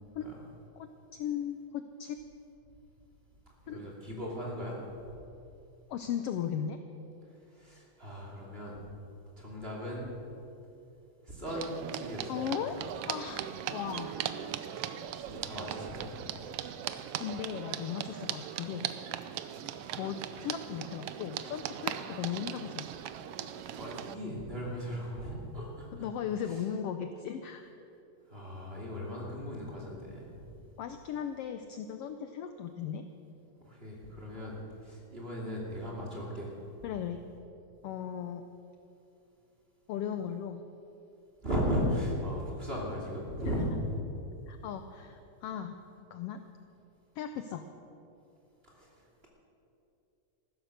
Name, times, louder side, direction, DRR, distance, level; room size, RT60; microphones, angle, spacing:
voice 1, 0.8-2.2 3.7-3.8 5.9-6.8 12.3-12.8 13.1-14.2 17.2-18.9 20.0-22.9 26.0-27.7 30.8-33.0 36.8-37.2 37.8-38.4 39.9-40.6 43.5-43.6 44.5-45.8 46.1-46.4 47.1-47.6, left 8 dB, 80° left, 8 dB, 1.4 m, -37 dB
voice 2, 3.6-4.8 7.5-8.8 9.4-10.1 11.2-12.5 15.1-16.1 23.7-26.1 26.5-26.6 28.3-30.5 33.6-34.6 34.8-36.5 41.4-43.8 48.7-49.0, equal, 20° right, -3 dB, 2.7 m, -37 dB
sound 1, 11.5-24.1, right 10 dB, 80° right, 1.4 m, -39 dB
15.0 x 13.0 x 6.5 m, 2.8 s
omnidirectional pair, 3.4 m